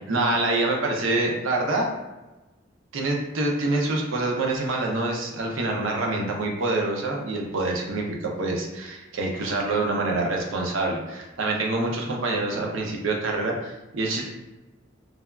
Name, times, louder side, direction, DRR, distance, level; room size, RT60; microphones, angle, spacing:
voice 1, 0.0-1.9 2.9-14.2, right 2 dB, 80° right, 0 dB, 0.5 m, -26 dB
3.2 x 2.3 x 2.3 m, 1.1 s
head